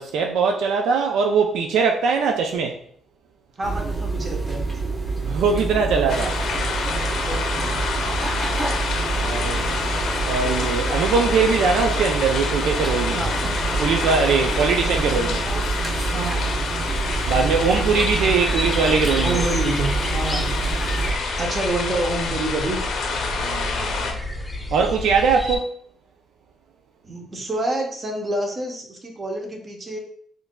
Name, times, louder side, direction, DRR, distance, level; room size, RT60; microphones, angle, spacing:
voice 1, 0.0-2.8 5.2-6.4 9.1-9.7 10.2-13.2 13.8-15.5 17.3-19.4 23.4-24.2 24.7-25.8, right 5 dB, 85° right, 0.3 m, -21 dB
sound 1, 3.6-21.1, right 3 dB, 10° right, 1.1 m, -27 dB
voice 2, 3.6-4.6 7.2-7.8 13.1-13.4 14.1-14.4 16.1-16.9 19.2-20.5 21.4-22.8 27.0-30.0, right 2 dB, 35° right, 0.9 m, -28 dB
sound 2, 6.1-24.1, left 4 dB, 70° left, 0.6 m, -28 dB
sound 3, 16.8-25.6, left 1 dB, 5° left, 0.9 m, -31 dB
4.6 x 2.5 x 2.2 m
cardioid pair, 90°, 0 cm